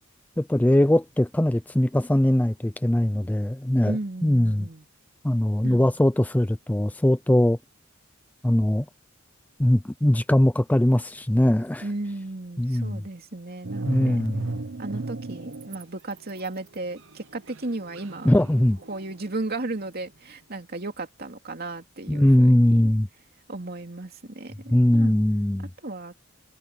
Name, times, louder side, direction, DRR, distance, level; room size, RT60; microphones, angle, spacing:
voice 1, 0.4-4.7 5.2-7.6 8.4-8.9 9.6-11.8 12.6-13.0 13.8-14.6 18.2-18.8 22.1-23.1 24.7-25.7, left 1 dB, 10° left, 0.4 m, -21 dB
voice 2, 3.8-4.9 5.6-5.9 11.8-14.2 14.8-18.3 18.9-22.8 23.5-25.2 25.8-26.2, right 2 dB, 50° right, 2.7 m, -35 dB
sound 1, 13.6-15.8 16.1-19.5, right 3 dB, 70° right, 0.9 m, -34 dB
head